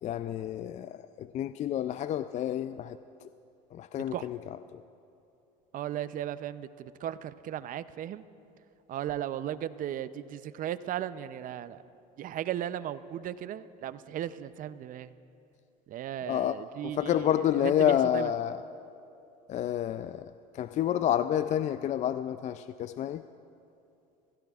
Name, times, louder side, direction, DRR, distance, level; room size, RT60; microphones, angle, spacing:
voice 1, 0.0-3.3 3.7-4.8 16.2-16.6 16.8-18.6 19.5-23.2, left 11 dB, 40° left, 13 dB, 0.4 m, -29 dB
voice 2, 5.7-8.2 8.9-11.8 12.2-15.1 15.9-18.3, right 11 dB, 45° right, 15 dB, 0.6 m, -36 dB
25.5 x 16.5 x 2.4 m, 2.7 s
supercardioid pair, 95°, 20 cm